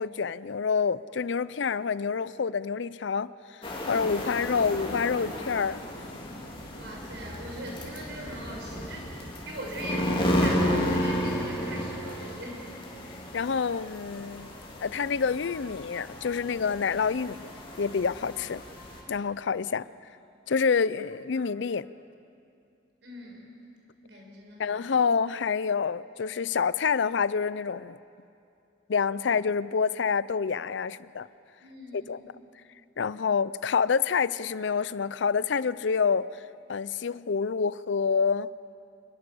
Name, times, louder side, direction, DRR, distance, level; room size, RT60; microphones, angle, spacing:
voice 1, 0.0-3.3 3.9-5.8 13.3-14.5 14.8-17.5 17.8-18.6 19.1-19.9 20.5-21.9 24.6-28.0 28.9-31.3 31.9-32.2 33.0-36.3 36.7-38.5, left 5 dB, 65° left, 18 dB, 0.5 m, -27 dB
sound 1, 3.6-19.0, equal, 30° left, 3.5 m, -33 dB
voice 2, 6.7-12.6 23.0-23.5 24.0-25.0 31.6-32.2, right 1 dB, 65° right, -1 dB, 6.1 m, -40 dB
26.5 x 21.0 x 7.0 m, 2.5 s
head